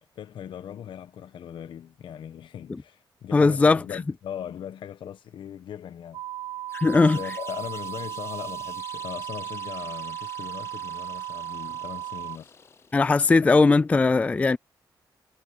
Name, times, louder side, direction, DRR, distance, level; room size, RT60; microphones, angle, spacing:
voice 1, 0.2-6.2 6.9-12.5, left 9 dB, 75° left, 1.2 m, -39 dB
voice 2, 3.3-3.8 6.7-7.2 12.9-14.6, left 3 dB, 15° left, 0.3 m, -19 dB
sound 1, 6.1-12.4, right 13 dB, 75° right, 1.0 m, -36 dB
sound 2, 6.7-13.0, left 5 dB, 30° left, 0.8 m, -47 dB
wide cardioid pair, 160°, 8 cm